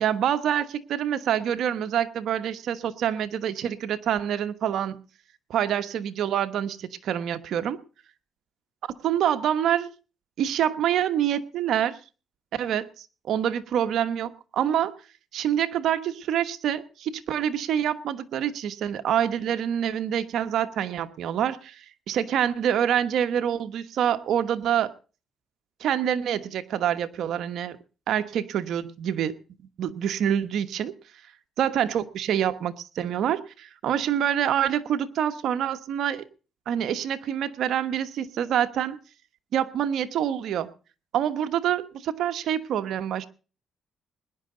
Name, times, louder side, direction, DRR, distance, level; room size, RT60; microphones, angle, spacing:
voice 1, 0.0-5.0 5.5-7.8 9.0-9.9 10.4-12.0 12.5-14.9 15.3-24.9 25.8-27.8 28.1-29.3 29.8-30.9 31.6-36.3 36.7-39.0 39.5-40.7 41.1-43.3, right 9 dB, 75° right, 10 dB, 1.2 m, -26 dB
21.0 x 10.5 x 3.9 m, 0.35 s
cardioid pair, 90°, 0 cm